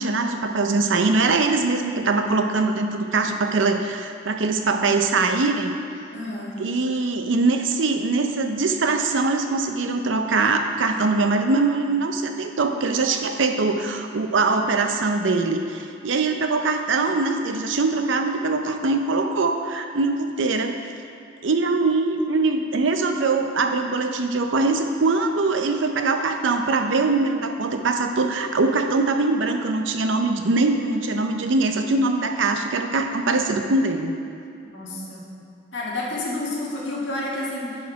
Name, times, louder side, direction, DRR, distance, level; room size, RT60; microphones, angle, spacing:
voice 1, 0.0-5.8 6.6-20.8 21.4-34.1, right 3 dB, 90° right, 5 dB, 0.6 m, -22 dB
voice 2, 6.1-6.5 34.7-35.3 35.7-37.8, left 2 dB, 75° left, -5 dB, 1.7 m, -30 dB
10.0 x 4.4 x 4.7 m, 2.6 s
head